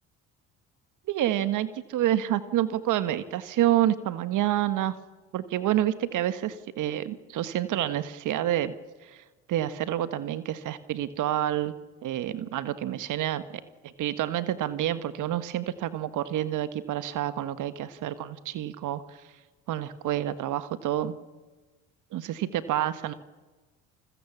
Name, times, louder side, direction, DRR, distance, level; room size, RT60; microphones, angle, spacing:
voice 1, 1.1-4.9 5.3-8.7 9.0-9.2 9.5-11.7 12.0-13.4 13.8-19.2 19.7-21.1 22.1-23.1, right 12 dB, 55° right, 13 dB, 1.5 m, -28 dB
30.0 x 22.0 x 7.3 m, 1.2 s
hypercardioid pair, 60°, 36 cm